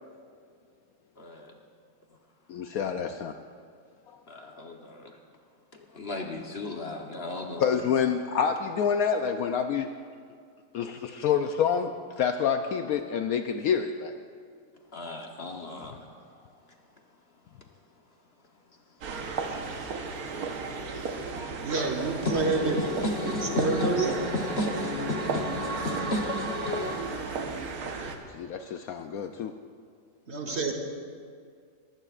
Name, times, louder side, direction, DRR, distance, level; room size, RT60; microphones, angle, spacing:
voice 1, 1.2-1.5 4.3-5.2 5.9-7.8 14.9-16.4 22.2-27.1 30.5-30.7, left 2 dB, 45° left, 2 dB, 1.1 m, -33 dB
voice 2, 2.5-3.3 7.6-9.9 10.7-14.2 28.3-29.5, left 7 dB, 70° left, 7 dB, 0.9 m, -27 dB
sound 1, 19.0-28.2, right 4 dB, 65° right, 1.5 m, -34 dB
voice 3, 21.3-22.8 23.2-24.1 30.3-30.7, right 3 dB, 45° right, 2 dB, 1.3 m, -29 dB
21.0 x 15.5 x 2.5 m, 2.2 s
omnidirectional pair, 1.8 m